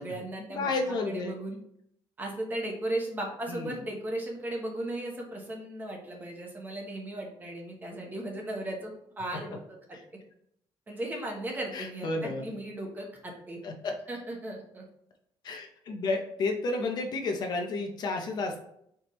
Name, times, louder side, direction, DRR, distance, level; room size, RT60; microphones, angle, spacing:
voice 1, 0.0-0.7 1.0-1.6 2.2-10.0 10.9-13.6 14.1-14.8, right 1 dB, 20° right, 0 dB, 1.0 m, -36 dB
voice 2, 0.5-1.4 3.5-3.8 11.7-12.5 13.6-13.9 15.4-18.6, left 3 dB, 50° left, 4 dB, 0.6 m, -31 dB
4.4 x 3.5 x 3.0 m, 0.71 s
cardioid pair, 155°, 9 cm